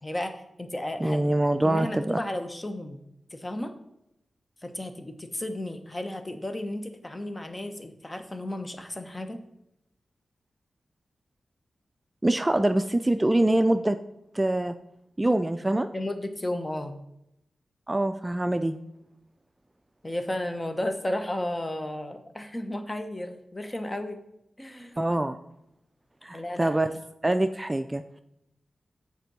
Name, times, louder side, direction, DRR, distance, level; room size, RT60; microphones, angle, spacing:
voice 1, 0.0-1.2 1.6-3.0 3.3-3.7 4.6-9.4 15.9-17.0 20.0-24.2 24.6-25.0 26.3-26.8, left 1 dB, 25° left, 7 dB, 1.1 m, -33 dB
voice 2, 1.0-2.2 12.2-14.0 14.3-14.7 15.2-15.9 17.9-18.8 25.0-25.4 26.2-26.9 27.2-28.2, right 1 dB, 20° right, 9 dB, 0.4 m, -24 dB
6.8 x 4.3 x 6.1 m, 0.83 s
cardioid pair, 50°, 0 cm